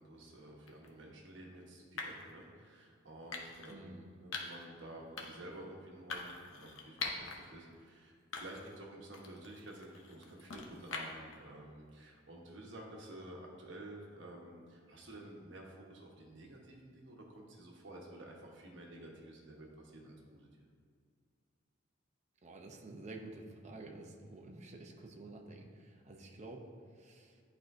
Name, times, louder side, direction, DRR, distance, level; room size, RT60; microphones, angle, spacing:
voice 1, 0.0-20.7, right 1 dB, 65° right, -1 dB, 1.1 m, -51 dB
sound 1, 0.7-0.9 2.0-2.3 3.3-3.7 4.3-4.7 5.2-5.5 6.1-7.4 7.8-7.9 8.3-8.8 9.1-11.3, left 4 dB, 85° left, 0.8 m, -43 dB
voice 2, 3.7-4.0 22.4-27.4, right 2 dB, 35° right, 2 dB, 0.6 m, -50 dB
10.5 x 4.4 x 2.6 m, 2.1 s
head